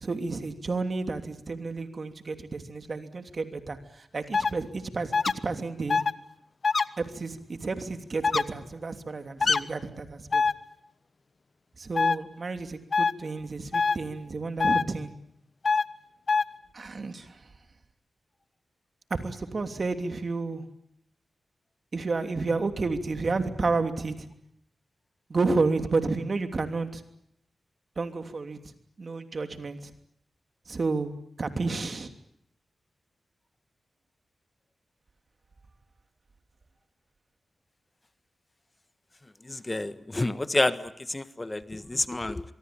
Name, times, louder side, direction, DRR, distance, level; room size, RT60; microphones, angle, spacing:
voice 1, 0.0-5.1 5.4-6.0 7.0-10.4 11.8-15.1 16.7-17.4 19.1-20.6 21.9-24.3 25.3-27.0 28.0-28.6 29.0-29.9 30.7-31.1 31.4-32.1, right 3 dB, 55° right, 7 dB, 3.0 m, -31 dB
sound 1, 4.3-4.5 5.1-5.3 5.9-6.1 6.6-6.8 8.2-8.4 9.4-9.6 10.3-10.5 11.9-12.2 12.9-13.1 13.7-14.0 14.6-14.8 15.6-15.8 16.3-16.4, left 4 dB, 55° left, 1.1 m, -23 dB
voice 2, 39.5-42.4, left 2 dB, 30° left, 12 dB, 1.5 m, -29 dB
24.5 x 23.0 x 8.8 m, 0.74 s
cardioid pair, 45°, 0 cm